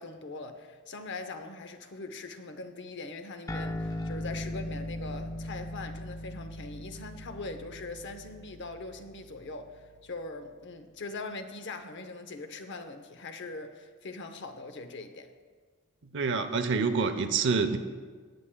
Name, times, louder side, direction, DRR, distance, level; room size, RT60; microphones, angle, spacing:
voice 1, 0.0-15.3, left 3 dB, 50° left, 0.7 m, -41 dB
sound 1, 3.5-10.3, left 1 dB, 15° left, 0.4 m, -39 dB
voice 2, 16.0-17.8, right 4 dB, 55° right, 0.6 m, -27 dB
18.0 x 8.7 x 2.2 m
head